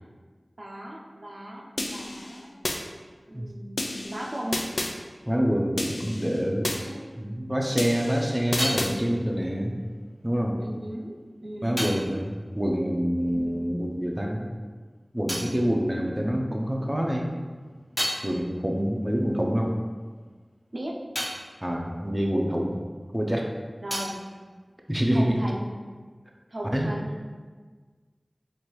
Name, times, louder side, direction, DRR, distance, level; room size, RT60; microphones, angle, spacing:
voice 1, 0.6-2.7 3.3-4.7 6.7-7.1 10.6-11.8 13.3-13.6 20.7-21.0 23.8-24.2 25.1-25.7 26.5-27.2, right 1 dB, 70° right, -2 dB, 0.5 m, -37 dB
sound 1, 1.8-2.8 3.8-4.9 5.8-6.8 7.8-8.9, left 2 dB, 90° left, 0.3 m, -31 dB
voice 2, 5.3-6.7 7.2-9.8 10.2-10.6 11.6-14.5 15.1-17.3 18.2-19.7 21.6-22.8 23.1-23.5 24.9-25.4 26.7-26.9, equal, 15° right, 0 dB, 0.5 m, -26 dB
sound 2, 7.9-13.8 14.0-16.7 17.1-23.1 23.4-25.4, equal, 25° left, 0.8 m, -38 dB
4.6 x 2.5 x 2.9 m, 1.5 s
wide cardioid pair, 50°, 0 cm